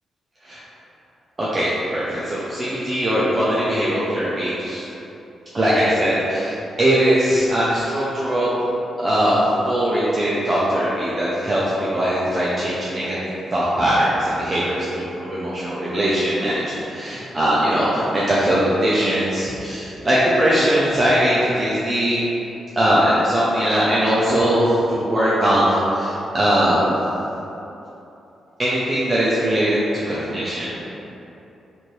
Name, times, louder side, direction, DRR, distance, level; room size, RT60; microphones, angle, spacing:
voice 1, 1.4-4.9 5.5-8.5 9.0-22.2 22.7-26.9 28.6-29.8 30.1-30.7, equal, 25° right, -8 dB, 0.5 m, -20 dB
4.3 x 2.6 x 3.1 m, 3.0 s
cardioid pair, 115°, 0 cm